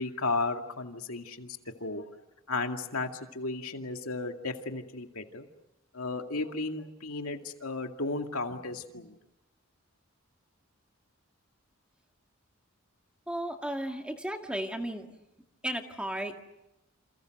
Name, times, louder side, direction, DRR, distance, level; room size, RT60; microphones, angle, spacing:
voice 1, 0.0-2.0 2.5-5.5 5.9-9.1, left 3 dB, 85° left, 4 dB, 2.3 m, -34 dB
voice 2, 13.3-15.1 15.6-16.4, right 1 dB, 5° right, 4 dB, 2.1 m, -34 dB
28.5 x 28.0 x 6.6 m, 0.93 s
head